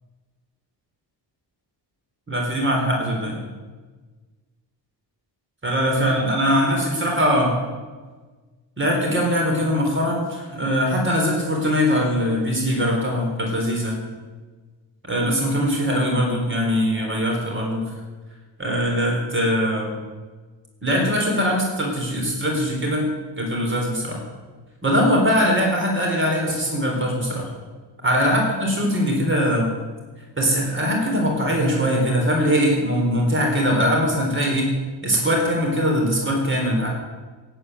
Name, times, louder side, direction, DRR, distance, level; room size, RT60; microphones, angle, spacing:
voice 1, 2.3-3.3 5.6-7.6 8.8-14.0 15.0-17.8 18.6-19.9 20.8-23.1 23.4-24.2 24.8-27.5 28.0-29.7 30.4-34.7 35.0-36.9, equal, 25° right, 0 dB, 4.1 m, -21 dB
16.5 x 9.1 x 9.3 m, 1.4 s
wide cardioid pair, 140°, 44 cm